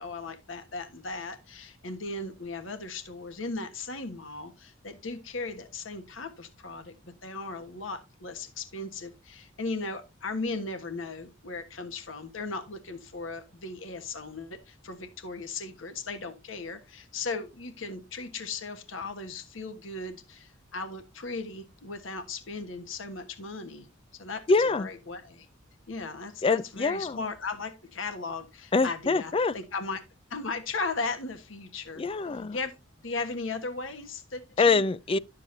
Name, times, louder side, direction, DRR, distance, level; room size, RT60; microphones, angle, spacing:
voice 1, 0.0-23.9 24.1-25.5 25.9-30.0 30.3-32.0 32.5-32.8 33.0-34.8, left 3 dB, 90° left, 1.4 m, -37 dB
voice 2, 24.5-24.9 26.4-27.2 28.7-29.5 32.0-32.6 34.6-35.2, left 4 dB, 30° left, 0.4 m, -24 dB
12.0 x 7.4 x 2.7 m
head